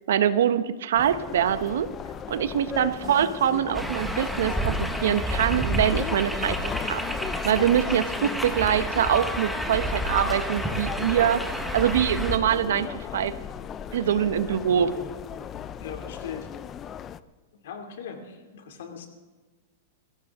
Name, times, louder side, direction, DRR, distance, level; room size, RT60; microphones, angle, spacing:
voice 1, 0.1-1.9 2.3-7.0 7.4-11.4 11.7-13.3 13.9-14.9, right 9 dB, 80° right, 12 dB, 1.1 m, -24 dB
sound 1, 1.0-17.2, left 9 dB, 20° left, 0.4 m, -37 dB
sound 2, 3.7-12.4, equal, ahead, 1.1 m, -30 dB
voice 2, 15.8-16.5 17.6-19.1, left 7 dB, 70° left, 5 dB, 2.7 m, -39 dB
20.5 x 16.0 x 3.7 m, 1.3 s
supercardioid pair, 160°, 0 cm